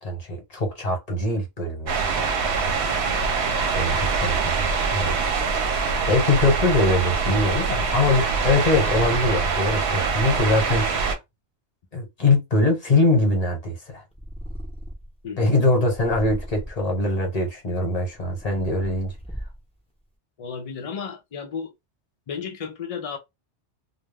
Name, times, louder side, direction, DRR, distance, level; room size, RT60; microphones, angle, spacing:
voice 1, 0.0-2.1 3.7-5.3 5.7-10.9 11.9-14.0 15.4-19.1, left 2 dB, 35° left, 1.1 m, -23 dB
sound 1, 1.9-11.2, right 5 dB, 70° right, 0.9 m, -24 dB
Purr, 14.1-15.2 15.9-17.0 17.7-19.8, equal, 5° left, 0.7 m, -37 dB
voice 2, 15.2-15.5 20.4-21.7 22.3-23.2, left 6 dB, 60° left, 0.4 m, -33 dB
2.2 x 2.2 x 3.4 m
omnidirectional pair, 1.2 m